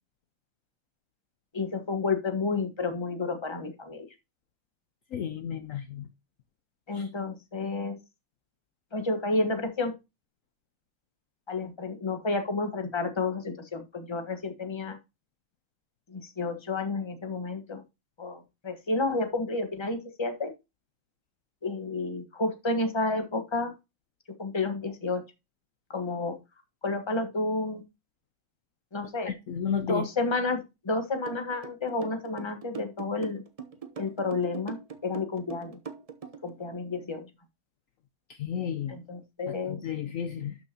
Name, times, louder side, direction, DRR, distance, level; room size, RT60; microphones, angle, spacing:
voice 1, 1.5-4.1 6.9-8.0 8.9-9.9 11.5-15.0 16.1-17.8 18.2-20.5 21.6-23.7 24.4-25.2 25.9-26.4 26.8-27.8 28.9-29.3 29.9-33.4 34.0-35.8 36.4-37.3 38.9-39.8, left 3 dB, 15° left, 1.0 m, -31 dB
voice 2, 5.1-6.1 6.9-7.1 29.3-30.1 38.3-39.0 39.5-40.6, left 8 dB, 75° left, 0.7 m, -33 dB
sound 1, 31.3-36.5, right 6 dB, 50° right, 0.4 m, -41 dB
12.0 x 6.0 x 2.9 m
omnidirectional pair, 2.2 m